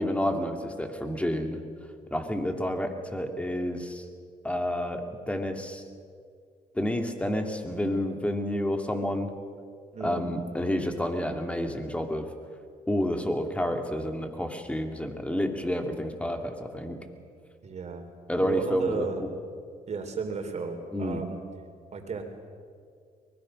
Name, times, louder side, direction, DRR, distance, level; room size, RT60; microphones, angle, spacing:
voice 1, 0.0-1.6 2.1-4.0 4.4-5.8 6.7-9.3 10.0-12.3 12.9-17.0 18.3-19.3 20.9-21.2, equal, 10° left, 5 dB, 2.7 m, -29 dB
voice 2, 9.9-10.2 17.6-18.1 18.4-19.2 19.9-21.4 21.9-22.2, right 5 dB, 45° right, 5 dB, 3.9 m, -33 dB
23.5 x 20.5 x 6.5 m, 2.1 s
cardioid pair, 85°, 15 cm